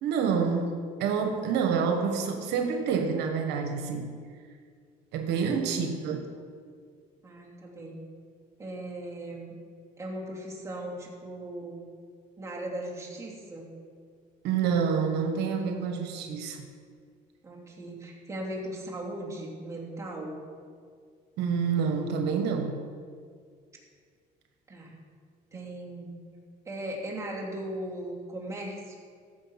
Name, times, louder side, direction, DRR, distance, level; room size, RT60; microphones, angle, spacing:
voice 1, 0.0-4.1 5.1-6.3 14.4-16.7 21.4-22.8, right 6 dB, 90° right, 5 dB, 1.0 m, -28 dB
voice 2, 7.2-8.0 8.6-9.5 10.0-11.8 12.4-13.7 17.4-20.4 24.7-25.0 25.5-26.1 26.6-29.0, right 1 dB, 20° right, -4 dB, 3.1 m, -38 dB
14.5 x 6.7 x 5.7 m, 2.1 s
cardioid pair, 110°, 17 cm